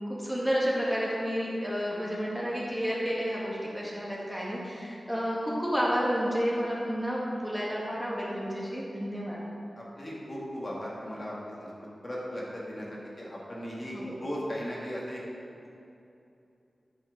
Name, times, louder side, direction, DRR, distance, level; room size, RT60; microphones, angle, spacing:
voice 1, 0.1-9.4 13.9-14.1, equal, ahead, -5 dB, 1.7 m, -30 dB
voice 2, 9.8-15.2, equal, 40° left, -5 dB, 2.2 m, -37 dB
8.7 x 6.2 x 5.3 m, 2.7 s
wide cardioid pair, 60°, 0 cm